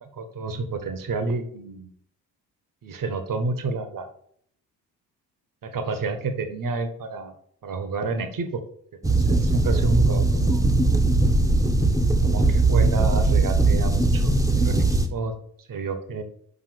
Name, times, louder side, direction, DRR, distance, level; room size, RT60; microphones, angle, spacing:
voice 1, 0.0-1.9 2.8-4.1 5.6-7.3 7.6-8.6 9.1-10.7 12.2-14.8 15.1-16.2, right 3 dB, 40° right, 9 dB, 1.3 m, -30 dB
sound 1, 9.0-15.1, right 2 dB, 5° right, 1.1 m, -20 dB
5.4 x 5.1 x 6.3 m, 0.64 s
figure-of-eight pair, 45°, 50 cm